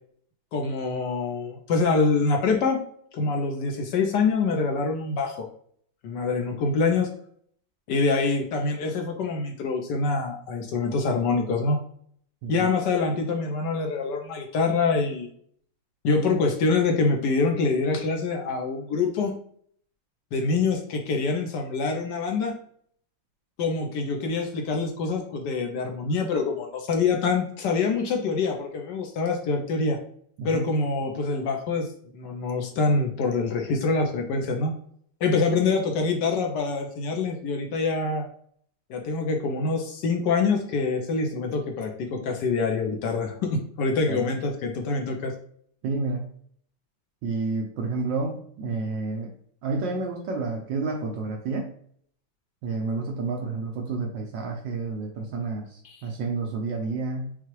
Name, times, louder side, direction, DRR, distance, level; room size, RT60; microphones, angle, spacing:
voice 1, 0.5-2.8 3.1-5.5 6.0-7.1 7.9-11.8 12.5-15.3 16.0-19.3 20.3-22.5 23.6-30.0 30.4-31.9 32.1-34.7 35.2-38.2 38.9-45.3 55.8-56.0, left 4 dB, 65° left, 3 dB, 1.2 m, -25 dB
voice 2, 45.8-46.3 47.2-49.3 49.6-51.7 52.6-57.4, right 3 dB, 70° right, 1 dB, 1.3 m, -30 dB
5.7 x 2.3 x 3.0 m, 0.62 s
omnidirectional pair, 2.2 m